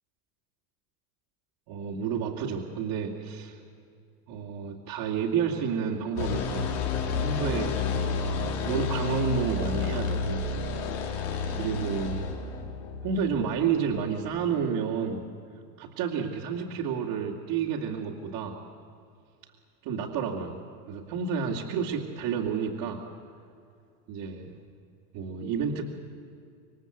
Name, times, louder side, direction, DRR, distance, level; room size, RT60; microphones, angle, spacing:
voice 1, 1.7-3.6 4.3-6.8 7.2-7.8 8.6-10.5 11.5-12.3 13.0-15.3 15.8-18.6 19.8-20.6 20.9-23.0 24.1-24.5 25.1-25.8, right 6 dB, 50° right, -3 dB, 2.6 m, -30 dB
sound 1, 6.2-14.2, left 4 dB, 55° left, 4.1 m, -30 dB
27.0 x 23.0 x 8.1 m, 2.4 s
supercardioid pair, 140°, 50 cm